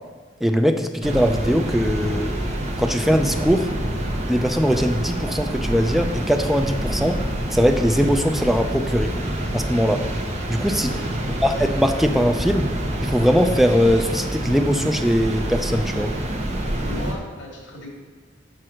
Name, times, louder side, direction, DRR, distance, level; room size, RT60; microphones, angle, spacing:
voice 1, 0.4-2.4 2.8-3.7 4.3-7.2 7.5-9.1 9.5-10.1 10.5-10.9 11.4-12.7 13.0-16.1, equal, ahead, 5 dB, 0.4 m, -20 dB
sound 1, 1.0-17.2, right 1 dB, 35° right, 0.9 m, -27 dB
voice 2, 10.5-11.2 16.8-17.9, left 1 dB, 70° left, -1 dB, 2.1 m, -37 dB
6.1 x 5.5 x 6.3 m, 1.5 s
head